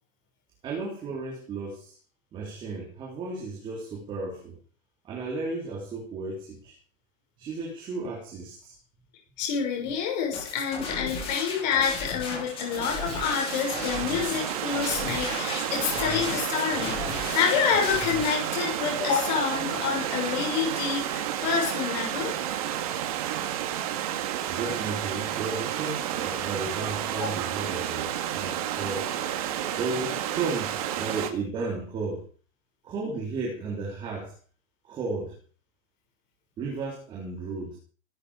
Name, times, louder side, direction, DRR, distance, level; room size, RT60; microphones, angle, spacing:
voice 1, 0.6-2.0 2.3-4.6 5.0-6.7 7.4-8.7 24.5-29.1 29.8-32.2 32.8-34.3 34.8-35.4 36.6-37.8, right 3 dB, 10° right, -2 dB, 3.5 m, -34 dB
voice 2, 9.4-22.4 27.2-27.3, left 7 dB, 35° left, 1 dB, 6.5 m, -28 dB
sound 1, 10.3-18.3, left 4 dB, 15° left, 4.3 m, -35 dB
Stream / Liquid, 12.4-31.3, right 11 dB, 30° right, 2.0 m, -31 dB
19.0 x 13.0 x 5.0 m, 0.40 s
hypercardioid pair, 180°, 39 cm